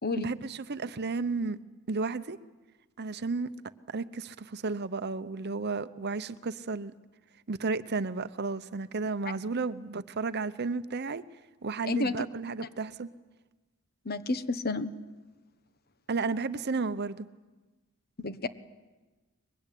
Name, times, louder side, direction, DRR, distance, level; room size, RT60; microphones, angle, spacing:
voice 1, 0.2-1.6 1.9-2.4 3.0-3.5 3.9-6.9 7.5-11.2 11.6-13.1 16.1-17.3, right 4 dB, 50° right, 0.8 m, -33 dB
voice 2, 14.0-14.9 18.2-18.5, left 3 dB, 50° left, 1.2 m, -30 dB
23.5 x 22.0 x 10.0 m
head